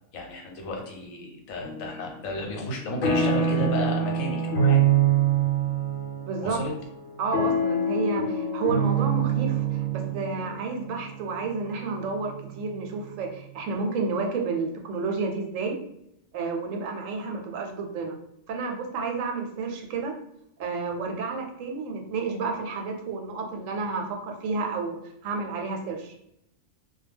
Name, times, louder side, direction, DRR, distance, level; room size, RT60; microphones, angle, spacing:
voice 1, 0.1-4.9 6.4-6.7, left 2 dB, 85° left, 1 dB, 1.1 m, -33 dB
sound 1, 1.6-2.2 2.6-12.6, right 5 dB, 70° left, 0.9 m, -25 dB
voice 2, 6.2-6.6 7.2-15.8 16.3-18.2 18.5-20.1 20.6-26.2, right 4 dB, 80° right, 2 dB, 0.9 m, -31 dB
2.2 x 2.2 x 3.3 m, 0.77 s
omnidirectional pair, 1.4 m